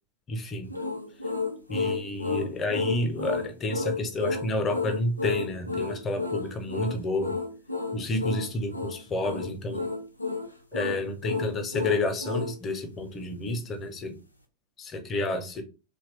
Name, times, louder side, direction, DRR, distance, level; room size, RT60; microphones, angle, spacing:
voice 1, 0.3-0.7 1.7-7.4 7.9-9.9 10.7-14.2 14.8-15.6, left 2 dB, 25° left, 0.7 m, -30 dB
sound 1, 0.7-12.6, left 4 dB, 85° left, 0.4 m, -31 dB
2.9 x 2.2 x 3.3 m
figure-of-eight pair, 90°, 0 cm